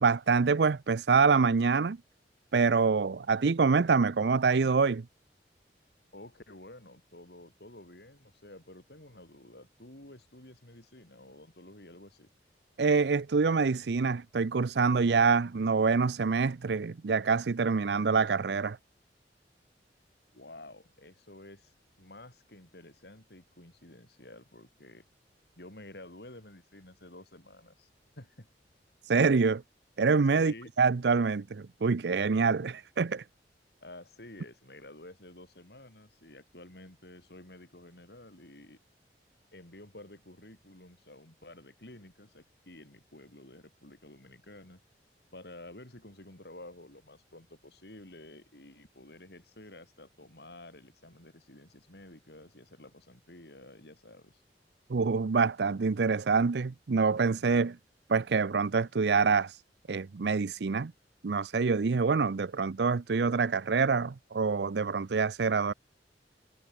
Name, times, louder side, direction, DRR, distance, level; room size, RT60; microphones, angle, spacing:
voice 1, 0.0-2.0 2.5-5.0 12.8-18.8 29.0-29.6 30.0-33.2 54.9-57.8 58.1-59.6 59.9-60.9 61.2-65.7, right 4 dB, 70° right, 0.5 m, -26 dB
voice 2, 6.1-12.3 20.3-21.7 22.0-25.0 25.6-27.9 28.2-28.5 30.4-30.7 33.8-38.8 39.5-44.8 45.3-54.4, left 1 dB, 65° left, 4.4 m, -51 dB
head